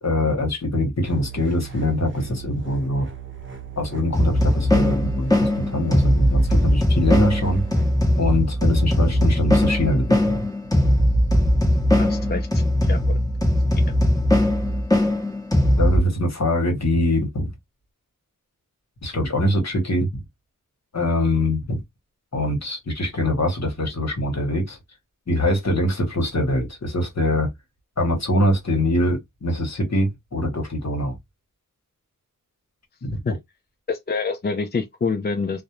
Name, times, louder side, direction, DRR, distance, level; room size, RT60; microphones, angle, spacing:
voice 1, 0.0-3.1 3.8-7.6 8.2-10.4 15.8-17.5 19.0-20.2 20.9-21.8 22.3-24.8 25.3-27.5 28.0-31.2 33.0-33.2, left 1 dB, 55° left, 1.0 m, -23 dB
sound 1, 1.0-8.0, right 9 dB, 35° right, 0.7 m, -38 dB
sound 2, 4.1-16.0, left 1 dB, 10° left, 0.8 m, -19 dB
voice 2, 12.0-13.2 33.3-33.4 33.9-35.6, left 4 dB, 30° left, 0.4 m, -27 dB
2.4 x 2.0 x 2.9 m
wide cardioid pair, 75°, 33 cm